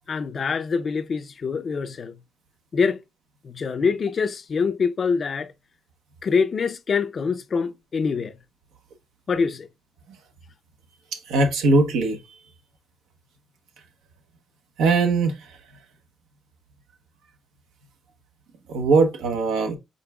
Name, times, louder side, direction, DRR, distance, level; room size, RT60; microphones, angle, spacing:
voice 1, 0.1-2.2 2.7-3.0 3.4-5.5 6.2-8.3 9.3-9.7, left 5 dB, 45° left, 0.4 m, -25 dB
voice 2, 11.1-12.2 14.8-15.3 18.7-19.8, right 3 dB, 90° right, 0.9 m, -20 dB
5.2 x 3.8 x 2.3 m
cardioid pair, 90°, 0 cm